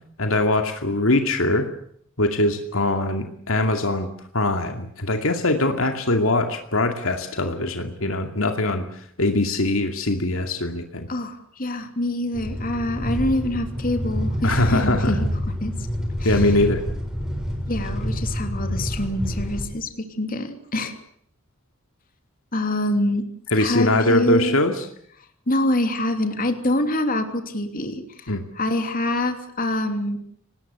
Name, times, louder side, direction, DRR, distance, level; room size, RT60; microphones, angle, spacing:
voice 1, 0.2-1.7 2.2-4.1 4.3-8.9 9.2-11.1 14.4-15.2 16.2-16.8 23.5-24.9 28.3-28.4, left 2 dB, 70° left, 5 dB, 2.5 m, -22 dB
voice 2, 11.1-15.2 15.6-15.7 16.2-16.5 17.7-20.9 22.5-23.2 23.6-24.6 25.5-30.2, left 1 dB, 40° left, 6 dB, 3.0 m, -25 dB
sound 1, 12.3-19.6, equal, 5° right, 6.3 m, -27 dB
25.0 x 19.5 x 8.2 m, 0.66 s
head